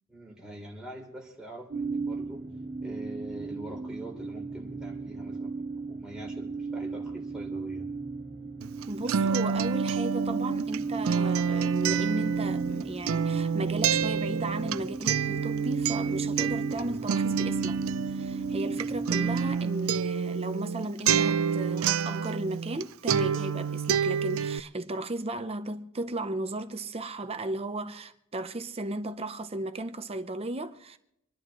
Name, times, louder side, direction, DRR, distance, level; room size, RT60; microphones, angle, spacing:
voice 1, 0.1-2.4 2.8-5.5 5.9-7.9, right 1 dB, 5° right, 3.3 m, -43 dB
sound 1, 1.7-19.6, right 4 dB, 60° right, 2.0 m, -34 dB
Acoustic guitar, 8.6-22.8 23.1-24.6, right 7 dB, 80° right, 0.4 m, -28 dB
voice 2, 8.9-31.0, right 2 dB, 30° right, 0.7 m, -35 dB
26.5 x 11.5 x 3.1 m
head